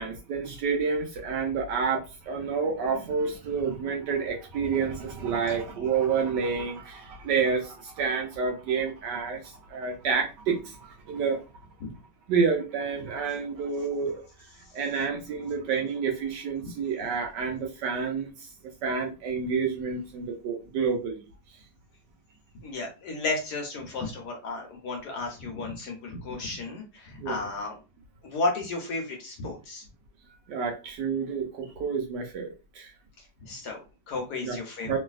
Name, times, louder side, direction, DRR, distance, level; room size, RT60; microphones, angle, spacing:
voice 1, 0.0-11.4 12.3-14.2 14.7-18.5 18.8-21.2 27.2-27.4 30.5-32.5 32.7-32.9 34.4-34.6 34.8-35.0, right 5 dB, 75° right, 3 dB, 1.1 m, -29 dB
voice 2, 22.6-27.8 28.2-29.8 33.2-35.0, left 3 dB, 65° left, 2 dB, 1.1 m, -33 dB
3.1 x 2.6 x 2.3 m, 0.30 s
omnidirectional pair, 2.2 m